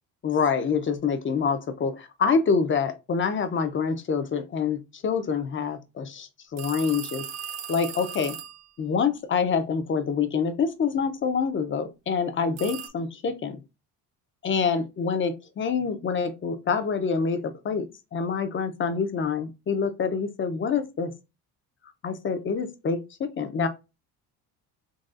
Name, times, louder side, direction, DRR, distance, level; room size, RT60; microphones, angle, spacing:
voice 1, 0.2-7.2 7.7-8.3 8.8-13.6 14.4-17.8 18.1-21.1 22.0-23.7, left 5 dB, 30° left, 0.6 m, -26 dB
sound 1, 6.6-8.7 12.6-12.9, right 8 dB, 45° right, 0.8 m, -37 dB
4.0 x 2.9 x 2.4 m
cardioid pair, 115°, 39 cm